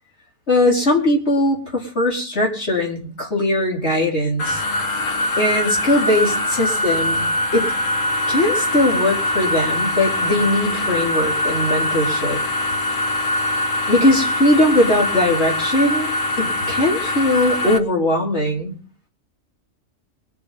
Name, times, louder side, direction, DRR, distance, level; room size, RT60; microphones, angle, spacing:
voice 1, 0.5-4.6 5.4-7.2 7.5-7.7 8.3-12.4 13.9-16.1 16.4-18.7, left 1 dB, 55° left, -2 dB, 4.8 m, -20 dB
sound 1, 4.4-17.8, left 1 dB, 70° left, 1.6 m, -22 dB
23.5 x 7.9 x 5.3 m, 0.39 s
omnidirectional pair, 1.4 m